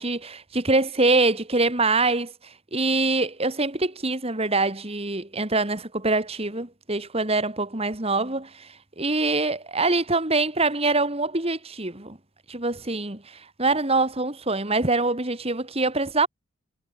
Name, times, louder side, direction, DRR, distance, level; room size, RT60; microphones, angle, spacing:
voice 1, 0.0-12.2 12.5-16.3, right 3 dB, 30° right, 2.4 m, -24 dB
head